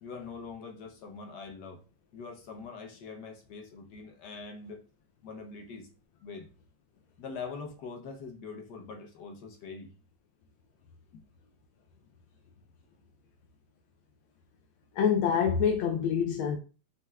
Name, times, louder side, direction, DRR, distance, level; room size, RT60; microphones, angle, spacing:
voice 1, 0.0-1.8 2.1-4.8 5.2-5.9 6.2-6.5 7.2-9.9 11.1-11.2, left 4 dB, 60° left, 1.3 m, -43 dB
voice 2, 15.0-16.6, left 7 dB, 85° left, 1.5 m, -26 dB
5.5 x 3.2 x 2.3 m
omnidirectional pair, 2.2 m